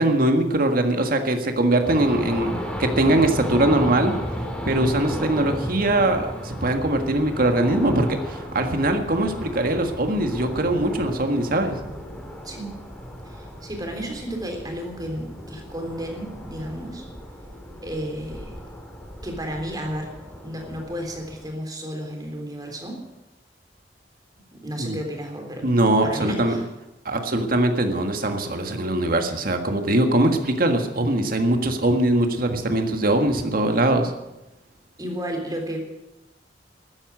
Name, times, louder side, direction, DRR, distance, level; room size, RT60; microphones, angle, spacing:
voice 1, 0.0-2.5 2.8-4.2 4.6-11.8 24.8-25.0 25.6-26.6 27.0-34.1, right 1 dB, 55° right, 6 dB, 1.7 m, -21 dB
sound 1, 1.8-21.5, equal, 5° left, 2.5 m, -34 dB
voice 2, 13.3-17.0 17.8-18.5 19.2-20.1 20.4-23.0 24.5-25.6 26.0-26.6 35.0-35.8, equal, 20° right, 2 dB, 3.6 m, -32 dB
14.0 x 10.0 x 9.7 m, 0.98 s
head